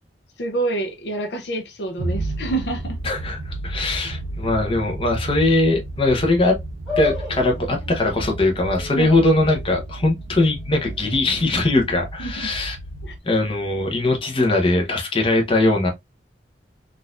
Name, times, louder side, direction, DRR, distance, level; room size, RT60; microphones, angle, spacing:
voice 1, 0.4-3.0 8.9-9.1 12.2-12.5 13.0-13.1, right 2 dB, 65° left, 0.7 m, -27 dB
sound 1, 2.0-13.2, right 2 dB, 90° right, 0.6 m, -32 dB
voice 2, 3.0-6.6 7.0-12.8 13.2-15.9, left 2 dB, 30° left, 0.8 m, -20 dB
sound 2, 6.9-13.3, left 5 dB, ahead, 2.0 m, -36 dB
3.9 x 2.5 x 2.4 m
head